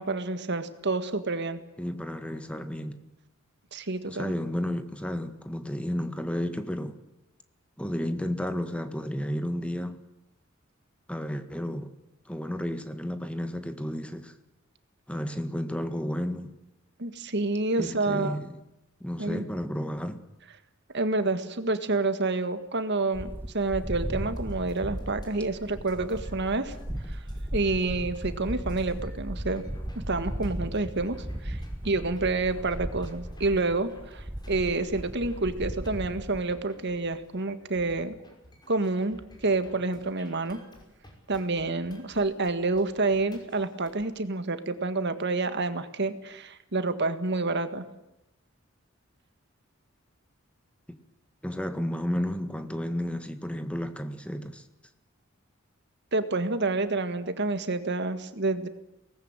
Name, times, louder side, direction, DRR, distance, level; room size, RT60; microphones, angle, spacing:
voice 1, 0.0-1.6 3.7-4.3 17.0-18.4 19.2-19.4 20.9-26.7 27.1-27.2 27.5-29.6 30.1-31.2 31.4-38.1 38.7-40.6 41.3-47.8 56.1-58.7, right 3 dB, 60° right, 1.8 m, -28 dB
voice 2, 1.8-3.0 4.1-7.0 7.8-10.0 11.1-11.9 12.2-14.3 15.1-16.5 17.8-18.6 19.0-20.2 50.9-51.0 51.4-54.6, equal, 5° left, 1.7 m, -32 dB
sound 1, 23.1-36.4, equal, 10° right, 0.8 m, -36 dB
sound 2, 24.4-44.1, equal, 20° left, 5.6 m, -54 dB
24.0 x 19.0 x 9.1 m
head